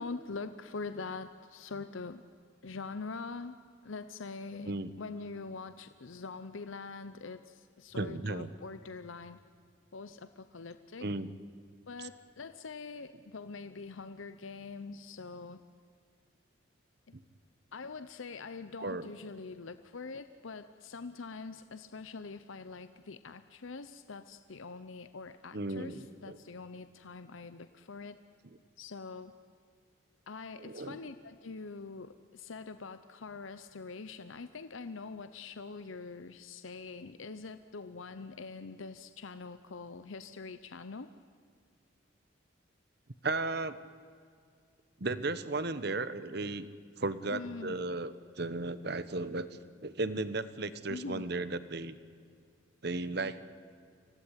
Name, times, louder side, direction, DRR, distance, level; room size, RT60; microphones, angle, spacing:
voice 1, 0.0-2.2 2.6-3.6 3.8-4.7 5.0-9.4 9.9-11.1 11.9-15.6 17.1-17.2 17.7-28.2 28.8-29.3 30.3-41.1 47.3-47.7 50.9-51.3, left 4 dB, 75° left, 11 dB, 0.8 m, -44 dB
voice 2, 7.9-8.5 11.0-11.3 12.0-12.1 17.1-17.2 18.8-19.1 25.5-26.4 30.6-31.0 43.2-43.8 45.0-46.7 47.0-49.5 49.8-52.0 52.8-53.5, right 2 dB, 55° right, 14 dB, 1.1 m, -35 dB
25.5 x 17.5 x 9.9 m, 2.2 s
head